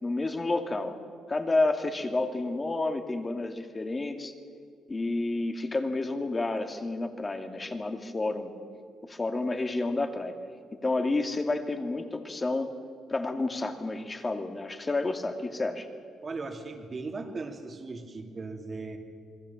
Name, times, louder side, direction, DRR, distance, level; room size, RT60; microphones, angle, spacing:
voice 1, 0.0-1.0 1.3-4.3 4.9-8.5 9.0-10.4 10.7-12.8 13.1-15.9, left 2 dB, 25° left, 6 dB, 2.3 m, -30 dB
voice 2, 16.2-19.0, right 3 dB, 35° right, 4 dB, 3.1 m, -38 dB
27.5 x 21.5 x 7.2 m, 2.3 s
cardioid pair, 90°, 0 cm